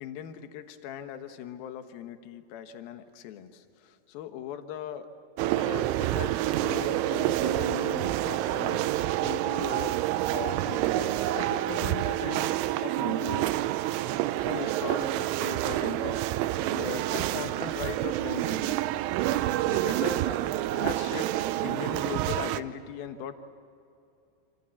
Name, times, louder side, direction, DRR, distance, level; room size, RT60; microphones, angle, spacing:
voice 1, 0.0-5.1 5.6-10.0 10.3-13.5 14.4-16.2 16.7-18.8 19.6-20.4 20.7-21.3 21.6-23.4, left 9 dB, 70° left, 7 dB, 2.4 m, -39 dB
sound 1, 5.4-22.6, right 14 dB, 80° right, 3.1 m, -28 dB
28.0 x 26.5 x 7.2 m, 2.5 s
omnidirectional pair, 5.8 m